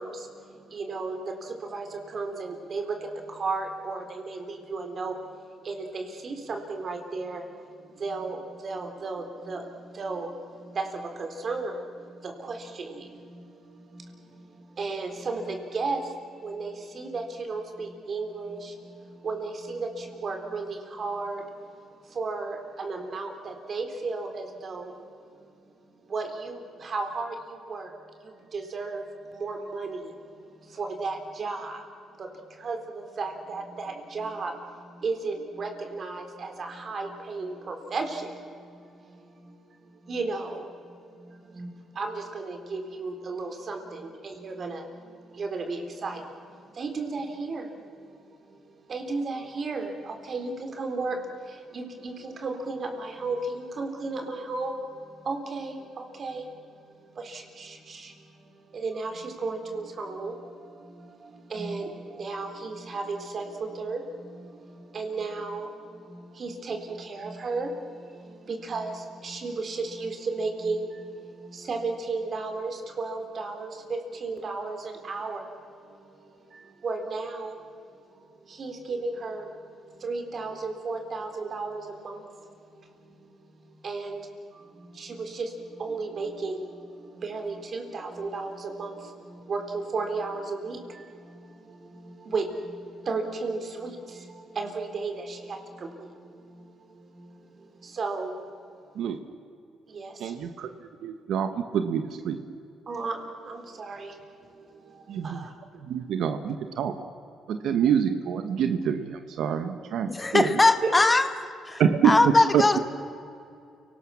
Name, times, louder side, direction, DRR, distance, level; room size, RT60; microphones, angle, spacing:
voice 1, 0.0-27.9 28.2-98.9 99.9-100.5 102.9-105.5 110.8-110.9, right 3 dB, 45° right, 4 dB, 3.9 m, -35 dB
voice 2, 100.2-100.7 101.0-102.4 105.1-105.4 105.9-106.9 107.5-110.5 111.8-112.1 112.5-112.6, right 8 dB, 75° right, 8 dB, 1.2 m, -26 dB
voice 3, 110.1-111.3 111.7-112.8, left 2 dB, 20° left, 9 dB, 1.4 m, -21 dB
29.5 x 19.0 x 7.2 m, 2.5 s
cardioid pair, 90°, 0 cm